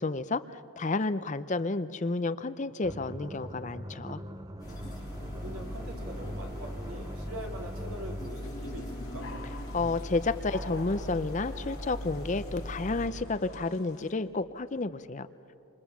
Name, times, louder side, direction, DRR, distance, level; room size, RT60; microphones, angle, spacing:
voice 1, 0.0-4.2 9.7-15.3, left 3 dB, 35° left, 13 dB, 0.5 m, -31 dB
sound 1, 2.8-8.5, equal, 20° right, 0.6 m, -43 dB
sound 2, 4.6-13.1, equal, 20° left, 6.7 m, -39 dB
voice 2, 5.3-9.3, equal, 75° right, 1 dB, 3.4 m, -43 dB
sound 3, 8.4-14.1, left 4 dB, 65° left, 2.7 m, -49 dB
29.5 x 26.0 x 7.2 m, 2.9 s
head